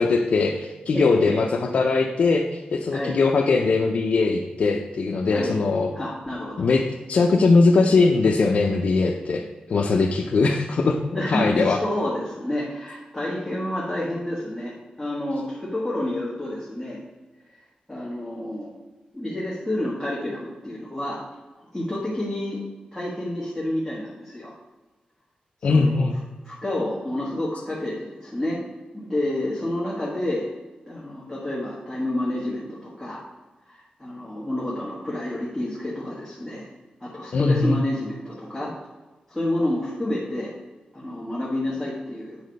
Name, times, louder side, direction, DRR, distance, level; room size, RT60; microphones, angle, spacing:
voice 1, 0.0-1.5 1.7-5.9 6.6-6.8 7.1-9.4 9.7-11.8 25.6-26.1 37.3-37.8, left 4 dB, 60° left, 1 dB, 0.5 m, -20 dB
voice 2, 0.9-1.4 2.9-3.2 5.3-5.6 5.9-6.7 11.1-17.0 17.9-18.7 19.1-21.2 21.7-22.6 22.9-24.5 25.7-26.1 26.4-28.6 28.9-30.5 30.9-33.2 33.7-36.7 37.0-38.7 39.3-40.5 40.9-42.4, left 1 dB, 5° left, -7 dB, 1.4 m, -29 dB
8.7 x 4.1 x 5.2 m, 1.2 s
wide cardioid pair, 155°, 3 cm